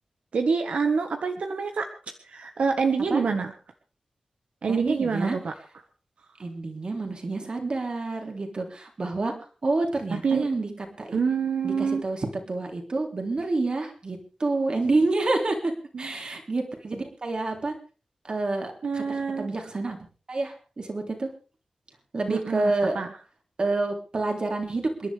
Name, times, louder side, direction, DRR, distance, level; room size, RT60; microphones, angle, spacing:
voice 1, 0.3-1.9 2.3-3.5 4.6-5.5 10.2-10.5 11.1-12.0 15.9-16.1 18.8-19.5 22.3-23.1, right 5 dB, 85° right, 6 dB, 1.5 m, -26 dB
voice 2, 4.7-5.4 6.4-9.3 9.6-11.2 11.6-15.7 16.0-17.7 18.2-20.0 20.3-21.3 22.1-23.0 23.6-25.1, right 2 dB, 45° right, 3 dB, 3.5 m, -28 dB
28.0 x 11.0 x 3.5 m, 0.36 s
wide cardioid pair, 110°, 2 cm